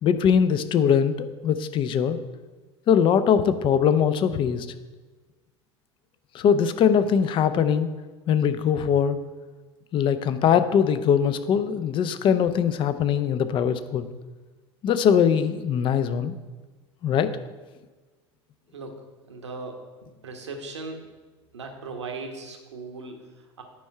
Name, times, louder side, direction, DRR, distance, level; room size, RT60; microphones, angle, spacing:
voice 1, 0.0-2.2 2.9-4.7 6.3-7.9 8.3-9.2 9.9-14.1 14.8-16.3 17.0-17.3, left 8 dB, 35° left, 11 dB, 0.6 m, -21 dB
voice 2, 19.3-21.0 21.5-23.6, right 3 dB, 75° right, 3 dB, 1.3 m, -38 dB
9.4 x 5.4 x 4.5 m, 1.3 s
figure-of-eight pair, 75°, 15 cm